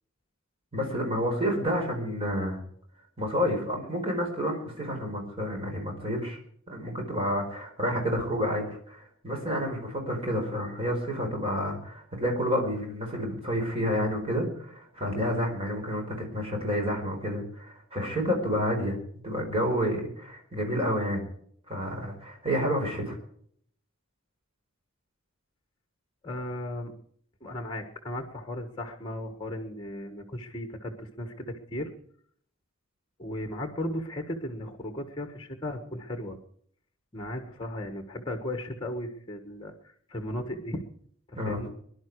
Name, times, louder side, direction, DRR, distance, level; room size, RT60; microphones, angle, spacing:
voice 1, 0.7-2.6 3.2-6.4 6.7-19.0 19.2-21.2 21.7-23.2 41.4-41.6, equal, 30° right, 1 dB, 4.6 m, -29 dB
voice 2, 26.2-26.9 27.4-31.9 33.2-36.4 37.1-40.8 41.3-41.7, left 1 dB, 20° left, 6 dB, 1.5 m, -36 dB
22.5 x 11.5 x 4.8 m, 0.62 s
head